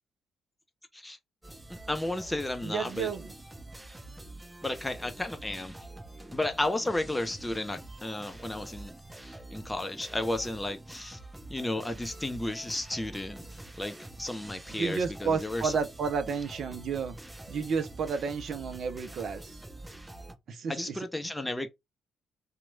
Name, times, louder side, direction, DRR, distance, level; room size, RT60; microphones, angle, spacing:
sound 1, 1.4-20.4, right 2 dB, 10° right, 0.9 m, -46 dB
voice 1, 1.7-3.1 4.6-5.7 6.3-11.2 11.5-15.8 20.7-21.7, left 1 dB, 10° left, 0.5 m, -33 dB
voice 2, 2.6-3.3 14.7-17.2 17.5-19.6 20.5-21.0, right 5 dB, 50° right, 0.4 m, -31 dB
2.9 x 2.1 x 2.6 m
figure-of-eight pair, 45°, 0 cm